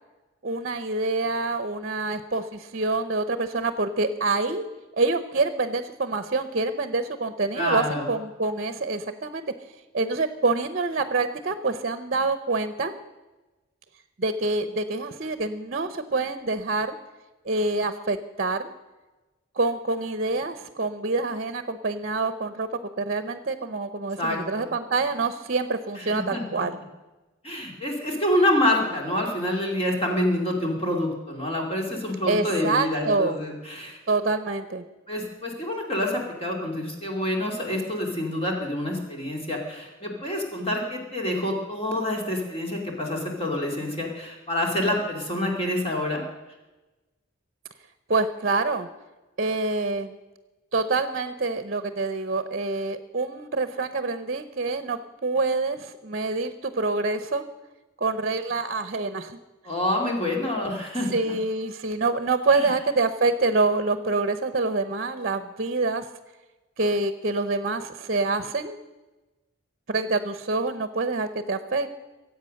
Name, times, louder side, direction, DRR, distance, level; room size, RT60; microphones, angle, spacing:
voice 1, 0.4-4.6 4.9-9.4 9.9-12.9 14.2-17.0 17.4-18.7 19.5-22.7 23.0-26.8 32.3-33.4 34.1-34.8 48.1-48.9 49.4-50.2 50.7-57.4 58.0-59.4 61.0-66.1 66.8-68.8 69.9-71.9, right 3 dB, 45° right, 11 dB, 0.8 m, -26 dB
voice 2, 7.6-8.1 24.2-24.7 26.0-26.6 27.4-34.0 35.1-46.2 59.6-61.3 62.5-62.7, left 1 dB, 30° left, 0 dB, 2.6 m, -27 dB
23.5 x 8.4 x 6.5 m, 1.1 s
head